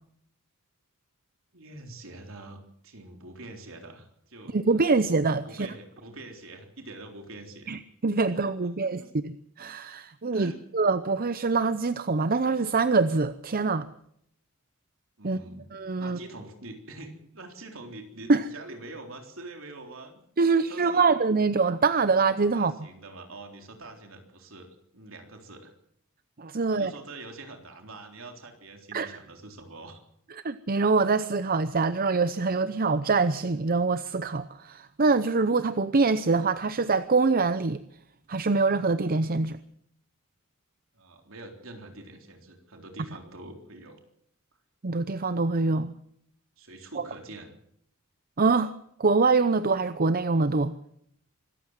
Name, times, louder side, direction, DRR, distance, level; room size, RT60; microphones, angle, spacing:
voice 1, 1.5-4.6 5.4-7.7 8.3-8.4 8.8-9.1 10.3-10.6 15.2-15.7 16.0-21.0 22.5-25.7 26.6-30.0 40.9-44.0 46.6-47.5, right 2 dB, 65° right, 4 dB, 3.8 m, -45 dB
voice 2, 4.5-5.7 7.7-9.3 9.6-13.9 15.2-15.4 15.7-16.2 18.3-18.4 20.4-22.7 26.4-26.9 28.9-29.1 30.4-37.8 38.3-39.6 44.8-45.9 48.4-48.7 49.0-50.7, right 4 dB, 45° right, 13 dB, 0.7 m, -24 dB
25.0 x 14.5 x 7.5 m, 0.71 s
head